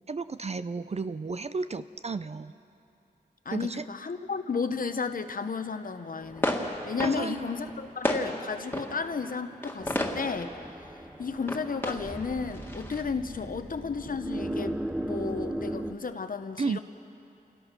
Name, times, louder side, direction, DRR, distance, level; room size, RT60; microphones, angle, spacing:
voice 1, 0.1-2.5 3.5-3.8 7.0-7.4 16.6-16.8, right 4 dB, 40° right, 12 dB, 0.5 m, -33 dB
voice 2, 3.4-6.6 6.8-16.8, left 5 dB, 55° left, 8 dB, 0.9 m, -33 dB
sound 1, 6.2-13.0, left 1 dB, 10° left, 1.9 m, -34 dB
sound 2, 9.8-15.9, right 1 dB, 5° right, 0.8 m, -37 dB
28.0 x 17.5 x 6.0 m, 2.7 s
wide cardioid pair, 80°, 17 cm